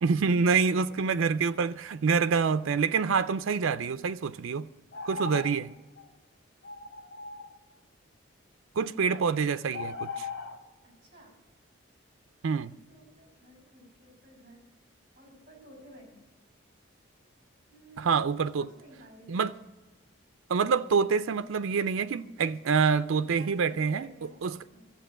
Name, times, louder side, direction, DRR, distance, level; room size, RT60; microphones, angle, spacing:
voice 1, 0.0-4.7 5.1-5.7 8.8-10.3 12.4-12.7 18.0-18.7 19.3-19.6 20.5-24.1 24.4-24.6, right 5 dB, 80° right, 0.5 m, -26 dB
sound 1, 4.9-5.6 5.9-6.1 6.6-7.6 9.1-9.3 9.7-10.6, left 4 dB, 55° left, 1.3 m, -38 dB
voice 2, 10.8-11.4 12.9-14.7 15.2-16.2 17.7-18.1 18.5-19.5 23.2-24.4 24.7-24.9, equal, 30° right, 5.6 m, -53 dB
13.5 x 7.4 x 8.8 m
head